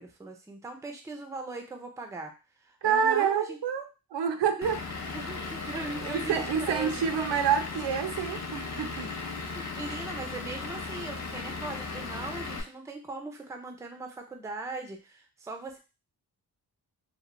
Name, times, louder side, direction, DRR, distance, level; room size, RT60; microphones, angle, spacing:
voice 1, 0.0-2.3 2.6-3.6 4.6-4.7 5.0-7.0 9.5-15.8, right 3 dB, 10° right, 4 dB, 0.4 m, -40 dB
voice 2, 2.8-4.8 6.0-9.1, right 7 dB, 75° right, 7 dB, 0.5 m, -28 dB
Vehicle / Engine, 4.6-12.6, left 3 dB, 40° left, 0.6 m, -36 dB
2.9 x 2.0 x 2.5 m, 0.30 s
wide cardioid pair, 95°, 43 cm